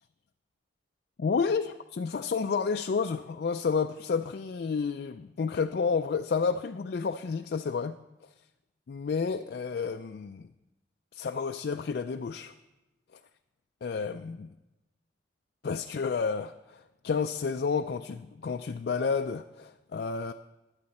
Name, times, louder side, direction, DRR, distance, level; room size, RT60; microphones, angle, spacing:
voice 1, 1.2-8.0 8.9-10.5 11.1-12.5 13.8-14.5 15.6-20.3, left 5 dB, 55° left, 0.3 m, -30 dB
16.5 x 10.5 x 4.2 m
head